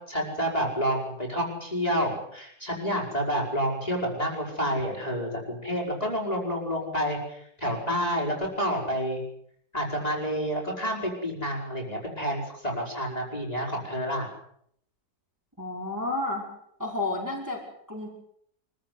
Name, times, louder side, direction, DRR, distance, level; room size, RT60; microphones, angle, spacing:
voice 1, 0.1-9.2 9.7-14.3, equal, 20° left, -2 dB, 5.6 m, -29 dB
voice 2, 15.6-16.5 16.8-18.1, left 2 dB, 10° right, -1 dB, 5.3 m, -31 dB
25.0 x 15.5 x 9.5 m, 0.70 s
omnidirectional pair, 1.9 m